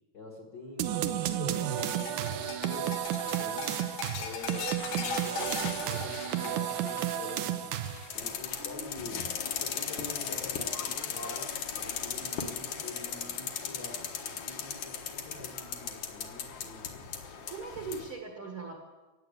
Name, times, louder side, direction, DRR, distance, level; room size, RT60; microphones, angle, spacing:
voice 1, 0.1-3.8 4.2-7.7 8.1-9.2 9.6-16.8, left 2 dB, 45° left, -1 dB, 1.6 m, -46 dB
sound 1, 0.8-8.2, right 11 dB, 85° right, 1.8 m, -32 dB
sound 2, 1.7-10.2 10.5-10.9 11.3-12.1 13.5-13.6 14.8-14.9, left 5 dB, 75° left, 3.3 m, -40 dB
sound 3, 8.1-18.1, left 7 dB, 60° left, 2.3 m, -37 dB
voice 2, 8.3-9.2 17.5-18.9, right 4 dB, 50° right, 0 dB, 1.7 m, -41 dB
16.0 x 9.2 x 8.2 m, 1.2 s
omnidirectional pair, 4.6 m